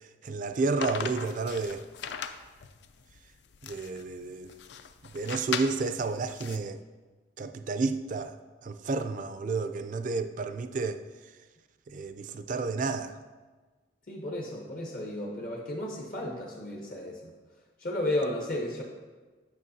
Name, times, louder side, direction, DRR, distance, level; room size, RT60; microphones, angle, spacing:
voice 1, 0.2-1.8 3.6-4.5 5.1-6.8 7.4-8.3 8.6-11.0 11.9-13.2, right 4 dB, 45° right, 0.3 m, -31 dB
sound 1, 0.8-6.6, left 7 dB, 65° left, 0.4 m, -38 dB
voice 2, 14.1-17.3 17.8-18.8, left 1 dB, 50° left, 0.9 m, -33 dB
9.1 x 5.7 x 2.7 m
head